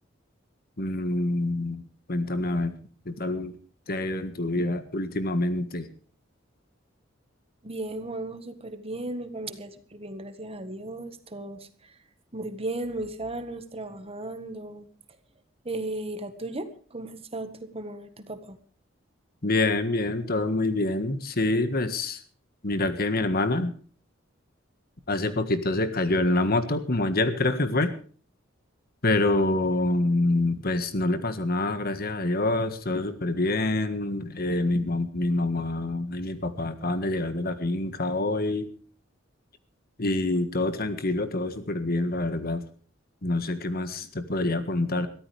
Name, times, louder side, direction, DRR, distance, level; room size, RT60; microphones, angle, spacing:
voice 1, 0.8-2.8 3.0-3.5 3.9-5.9 19.4-22.2 22.6-23.7 25.1-27.9 29.0-38.7 40.0-42.6 43.2-45.1, left 2 dB, 50° left, 10 dB, 1.7 m, -26 dB
voice 2, 7.6-12.0 12.3-14.9 15.6-18.6, right 2 dB, 30° right, 10 dB, 1.6 m, -36 dB
22.5 x 14.0 x 3.4 m, 0.40 s
head